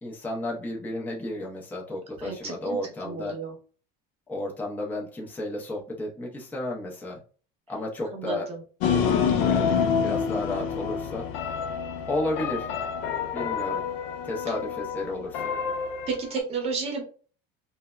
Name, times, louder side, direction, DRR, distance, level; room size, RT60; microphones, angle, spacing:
voice 1, 0.0-3.3 4.3-7.2 7.7-8.5 9.4-11.3 12.1-12.7 13.3-13.8 14.2-15.5, left 1 dB, 10° left, -2 dB, 0.4 m, -32 dB
voice 2, 2.2-3.5 8.1-8.6 16.1-17.0, right 5 dB, 30° right, 2 dB, 0.8 m, -32 dB
sound 1, 8.8-16.4, left 7 dB, 80° left, 0.5 m, -27 dB
3.2 x 2.0 x 2.2 m, 0.40 s
cardioid pair, 165°, 20 cm